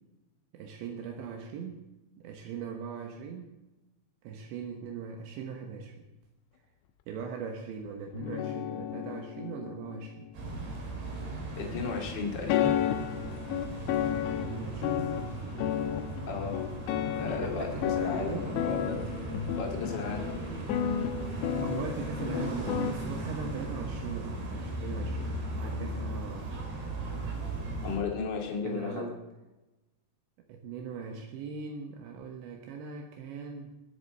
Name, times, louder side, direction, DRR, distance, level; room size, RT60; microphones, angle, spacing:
voice 1, 0.5-1.9 2.2-3.5 4.2-6.1 7.1-10.3 14.3-15.1 17.1-18.5 21.6-26.7 28.6-29.2 30.5-33.7, right 6 dB, 75° right, 3 dB, 3.2 m, -40 dB
sound 1, 8.1-11.7 12.5-22.9, left 10 dB, 80° left, 3.1 m, -33 dB
sound 2, 10.3-28.0, right 2 dB, 60° right, 4.9 m, -37 dB
voice 2, 11.6-12.8 16.2-16.6 17.0-19.0 19.6-20.3 27.8-29.1, left 5 dB, 35° left, 1 dB, 1.8 m, -34 dB
21.0 x 8.6 x 6.5 m, 1.1 s
omnidirectional pair, 5.4 m